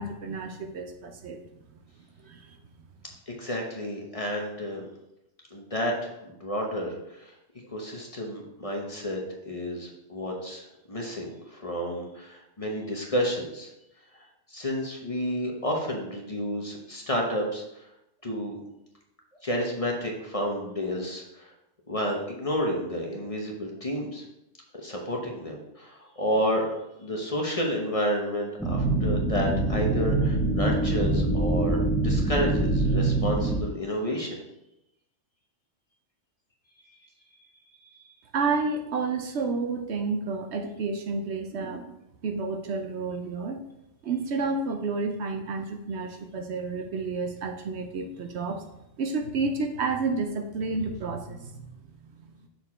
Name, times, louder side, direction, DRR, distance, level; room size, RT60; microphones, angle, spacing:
voice 1, 0.0-1.4 2.2-2.6 38.3-42.0 42.2-43.6 44.0-48.6 49.0-51.7 52.0-52.5, right 4 dB, 65° right, 5 dB, 0.9 m, -30 dB
voice 2, 3.3-4.8 5.5-7.3 7.7-13.7 14.5-17.9 18.2-18.6 19.4-21.5 21.9-24.2 24.8-26.7 27.0-34.4, equal, 30° left, 0 dB, 1.0 m, -30 dB
sound 1, 28.6-33.6, right 2 dB, 5° left, 0.9 m, -24 dB
6.7 x 4.4 x 4.3 m, 0.87 s
omnidirectional pair, 1.3 m